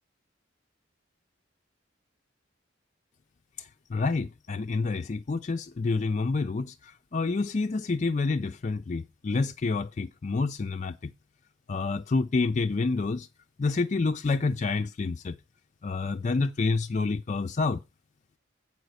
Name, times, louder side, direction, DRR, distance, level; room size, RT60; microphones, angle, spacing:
voice 1, 3.6-11.1 11.7-13.3 13.6-15.4 15.8-17.8, left 3 dB, 35° left, 0.4 m, -28 dB
8.0 x 4.8 x 6.4 m
head